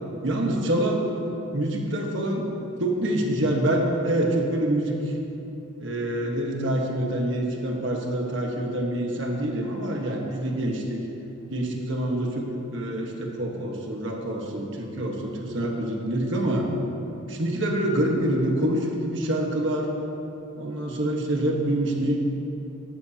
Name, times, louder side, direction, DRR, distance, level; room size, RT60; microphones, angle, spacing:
voice 1, 0.2-1.1 1.5-2.5 2.8-5.1 5.8-11.1 11.5-16.7 17.3-19.9 20.6-22.2, right 1 dB, 60° right, 0 dB, 1.4 m, -26 dB
13.0 x 12.0 x 2.9 m, 2.9 s
head